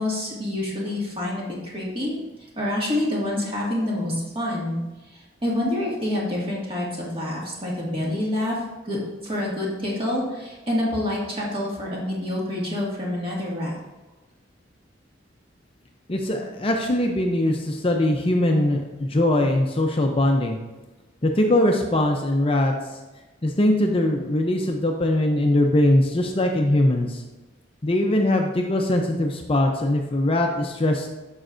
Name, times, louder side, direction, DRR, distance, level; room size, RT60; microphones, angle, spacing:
voice 1, 0.0-2.2 2.6-4.8 5.1-8.6 8.8-9.0 9.2-13.7, left 1 dB, 30° right, -4 dB, 2.0 m, -27 dB
voice 2, 16.1-20.6 21.2-23.0 23.4-27.2 27.8-31.1, left 1 dB, 30° left, 2 dB, 0.6 m, -21 dB
9.2 x 6.4 x 2.6 m, 1.1 s
head